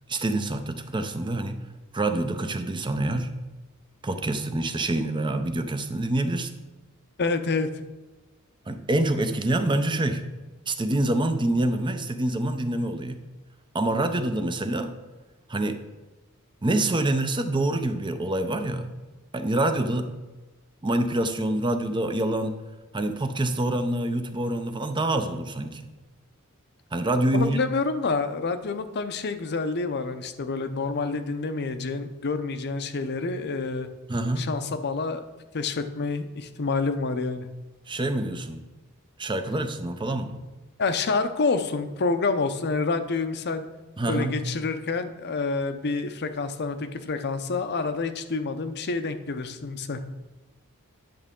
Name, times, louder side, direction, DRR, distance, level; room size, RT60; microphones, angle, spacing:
voice 1, 0.1-1.6 1.9-3.3 4.0-6.5 8.7-10.2 10.7-13.2 13.7-14.9 15.5-15.8 16.6-18.9 19.3-20.1 20.8-22.6 22.9-25.9 26.9-27.6 34.1-34.5 37.9-38.6 39.2-40.4 44.0-44.4, right 1 dB, 20° right, 8 dB, 0.6 m, -26 dB
voice 2, 7.2-7.7 27.3-33.9 34.4-35.2 35.5-37.5 40.8-43.6 44.1-50.0, left 4 dB, 50° left, 9 dB, 0.6 m, -28 dB
10.5 x 6.4 x 3.7 m, 1.2 s
head